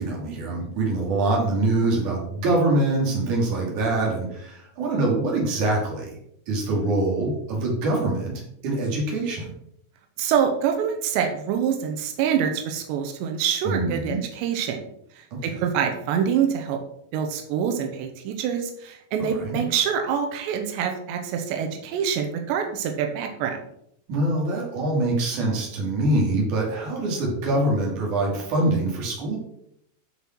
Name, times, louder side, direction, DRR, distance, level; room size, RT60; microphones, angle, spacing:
voice 1, 0.0-6.1 6.5-9.5 13.6-14.2 15.3-15.4 19.2-19.6 24.1-29.4, right 2 dB, 50° right, -2 dB, 4.0 m, -24 dB
voice 2, 10.2-14.8 15.6-16.8 17.1-23.6, right 8 dB, 90° right, 4 dB, 3.3 m, -25 dB
13.0 x 5.6 x 4.6 m, 0.73 s
omnidirectional pair, 4.9 m